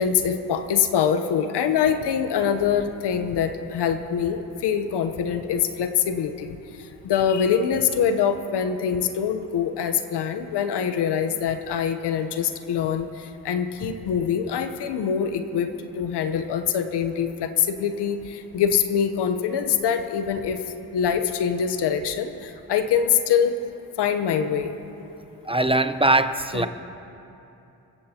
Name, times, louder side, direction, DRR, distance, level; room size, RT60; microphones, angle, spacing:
voice 1, 0.0-6.6 7.0-15.7 15.9-20.6 20.9-23.5 24.0-24.7 26.5-26.7, left 7 dB, 80° left, 8 dB, 1.0 m, -24 dB
voice 2, 25.4-26.7, right 2 dB, 15° right, 10 dB, 0.8 m, -21 dB
24.5 x 15.0 x 2.9 m, 2.9 s
supercardioid pair, 40°, 40 cm